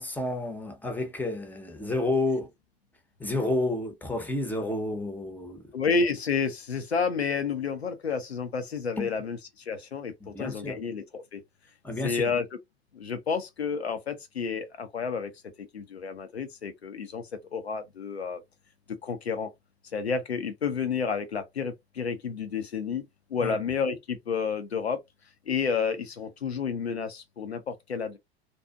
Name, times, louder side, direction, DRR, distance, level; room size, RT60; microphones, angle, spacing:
voice 1, 0.0-2.5 3.2-5.7 9.0-9.1 10.2-10.8 11.8-12.3 23.4-23.6, left 2 dB, 5° left, 0.7 m, -30 dB
voice 2, 5.7-11.4 12.0-12.5 12.9-15.3 15.6-17.2 17.5-18.4 18.9-19.5 19.9-23.0 23.3-25.0 25.5-28.2, left 5 dB, 85° left, 0.6 m, -30 dB
2.6 x 2.4 x 2.2 m
figure-of-eight pair, 75°, 31 cm